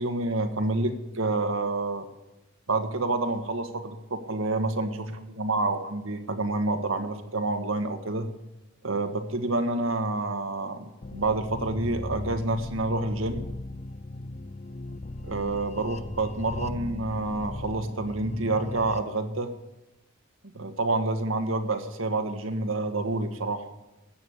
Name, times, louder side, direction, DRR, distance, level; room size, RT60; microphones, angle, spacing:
voice 1, 0.0-2.0 2.7-8.3 8.8-13.4 15.3-19.5 20.5-23.7, right 2 dB, 80° right, 6 dB, 1.6 m, -28 dB
sound 1, 11.0-19.0, left 2 dB, 35° left, 0.5 m, -38 dB
14.0 x 8.6 x 8.0 m, 0.97 s
head